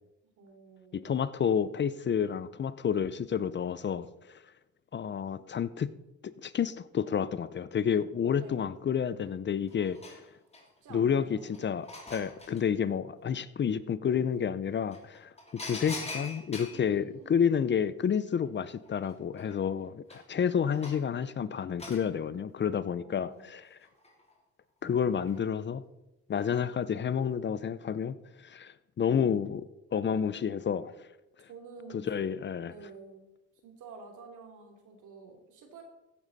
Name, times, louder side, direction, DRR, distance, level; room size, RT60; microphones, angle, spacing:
voice 1, 0.4-1.2 8.4-8.7 10.8-11.6 16.7-17.5 22.9-23.5 31.5-32.3 32.7-33.3 33.6-35.8, right 4 dB, 80° right, 3.0 m, -50 dB
voice 2, 0.9-4.4 4.9-5.9 6.2-10.3 10.9-23.8 24.8-25.8 26.3-29.6 29.9-31.1 31.4-31.5 31.9-32.7, left 7 dB, 40° left, 0.6 m, -30 dB
sound 1, 9.3-9.4 9.7-10.9 11.4-12.6 14.3-14.4 14.9-16.9 18.5-18.6 18.8-21.1 21.8-22.0 23.6-24.3 24.8-25.4 26.3-26.6 27.0-27.1, left 2 dB, 20° left, 3.1 m, -44 dB
15.5 x 8.9 x 4.1 m
cardioid pair, 90°, 30 cm